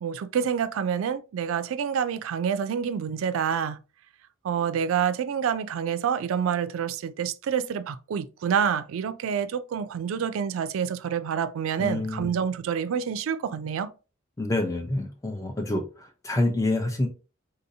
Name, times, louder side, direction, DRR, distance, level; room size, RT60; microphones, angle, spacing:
voice 1, 0.0-3.8 4.4-13.9, right 7 dB, 80° right, 0.3 m, -27 dB
voice 2, 11.8-12.3 14.4-17.1, left 2 dB, 15° left, 0.5 m, -27 dB
3.8 x 2.7 x 2.6 m
head